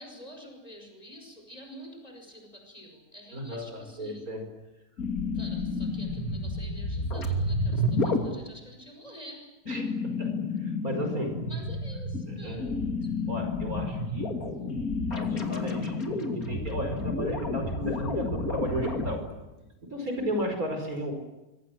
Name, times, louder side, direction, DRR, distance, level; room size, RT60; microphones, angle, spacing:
voice 1, 0.0-4.2 5.3-9.9 11.5-12.6 13.0-13.1 20.1-20.4, equal, 25° left, 3 dB, 6.0 m, -48 dB
voice 2, 3.3-4.4 9.7-9.9 10.2-10.3 10.6-11.4 12.3-12.8 13.3-14.4 15.1-15.9 16.4-19.2 19.8-21.1, equal, 65° right, 5 dB, 5.5 m, -34 dB
sound 1, 5.0-8.3 9.7-19.1, left 2 dB, 65° left, 3.4 m, -30 dB
25.5 x 24.5 x 7.7 m, 1.0 s
omnidirectional pair, 1.6 m